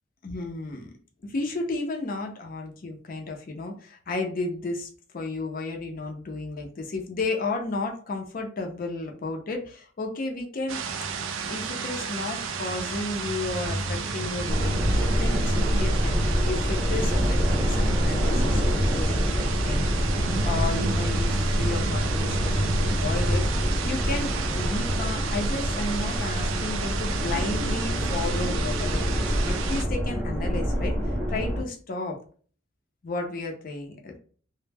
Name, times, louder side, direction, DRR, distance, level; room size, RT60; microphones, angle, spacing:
voice 1, 0.2-0.9 1.2-10.8 11.4-16.1 16.4-19.9 20.4-30.9 31.3-32.2 33.0-34.2, left 3 dB, 45° left, 2 dB, 0.5 m, -33 dB
sound 1, 10.7-29.8, right 3 dB, 75° right, 0.4 m, -31 dB
sound 2, 13.6-23.6, left 1 dB, 30° right, 0.6 m, -38 dB
sound 3, 14.5-31.6, equal, 5° left, 0.8 m, -26 dB
2.1 x 2.0 x 3.3 m, 0.44 s
head